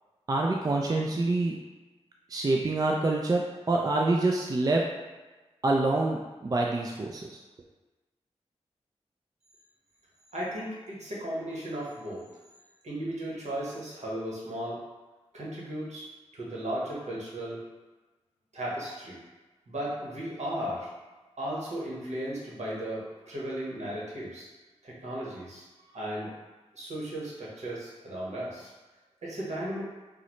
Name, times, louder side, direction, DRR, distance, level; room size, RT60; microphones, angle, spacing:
voice 1, 0.3-1.6 2.3-4.9 5.6-7.4, right 2 dB, 30° right, 0 dB, 0.3 m, -26 dB
voice 2, 10.3-12.3 12.8-14.8 15.3-16.1 16.3-17.6 18.5-19.2 19.7-20.9 21.4-24.5 24.8-26.3 26.7-28.7 29.2-29.8, right 1 dB, 70° right, -6 dB, 1.1 m, -35 dB
3.7 x 2.1 x 3.0 m, 1.2 s
cardioid pair, 55°, 12 cm